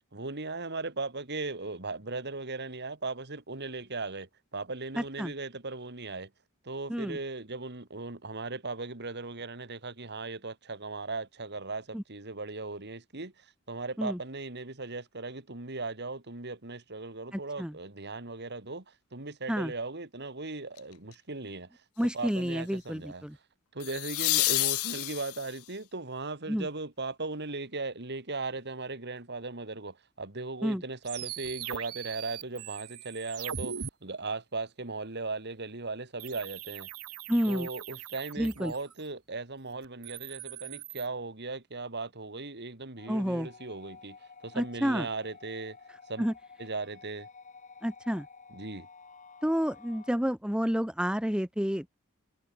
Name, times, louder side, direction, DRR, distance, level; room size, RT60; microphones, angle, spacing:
voice 1, 0.1-6.3 6.6-21.8 22.1-23.2 23.7-36.9 37.4-45.8 46.1-46.3 46.6-47.3 48.5-48.9, right 3 dB, 50° right, 2.6 m, -38 dB
voice 2, 5.0-5.3 6.9-7.2 11.9-12.0 14.0-14.2 17.3-17.7 19.5-19.7 22.0-23.4 26.5-26.7 30.6-30.8 37.3-37.7 38.4-38.7 43.1-43.5 44.5-45.1 46.2-46.3 47.8-48.3 49.4-51.9, equal, 5° right, 1.4 m, -30 dB
sound 1, 20.8-21.1 23.8-25.7 28.6-28.7, left 20 dB, 75° left, 0.5 m, -29 dB
sound 2, 31.0-33.9 36.2-39.0 39.8-41.1, right 8 dB, 85° right, 1.8 m, -41 dB
sound 3, 43.0-50.1, left 5 dB, 35° left, 2.6 m, -52 dB
head